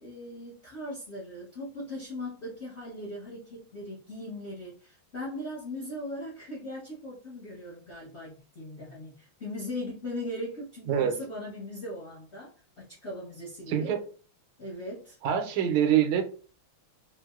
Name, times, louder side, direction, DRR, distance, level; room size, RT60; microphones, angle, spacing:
voice 1, 0.0-13.9 14.6-15.2, left 1 dB, 60° left, -7 dB, 0.7 m, -39 dB
voice 2, 13.7-14.0 15.2-16.2, right 9 dB, 85° right, 7 dB, 1.5 m, -25 dB
4.4 x 2.0 x 2.3 m, 0.39 s
omnidirectional pair, 2.3 m